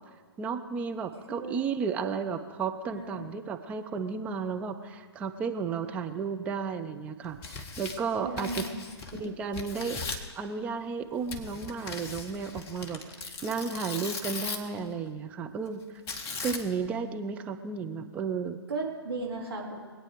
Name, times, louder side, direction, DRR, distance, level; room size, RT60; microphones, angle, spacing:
voice 1, 0.4-8.6 9.1-10.0 10.4-15.8 16.4-18.6, right 5 dB, 10° right, 6 dB, 0.5 m, -33 dB
voice 2, 2.8-3.3 8.2-8.7 9.1-9.3 18.7-19.9, right 3 dB, 60° right, -2 dB, 3.6 m, -36 dB
Tearing, 7.2-9.3 9.5-10.3 11.3-14.8 16.1-16.9, left 4 dB, 20° left, 1.0 m, -38 dB
22.5 x 8.8 x 5.0 m, 1.5 s
figure-of-eight pair, 130°, 14 cm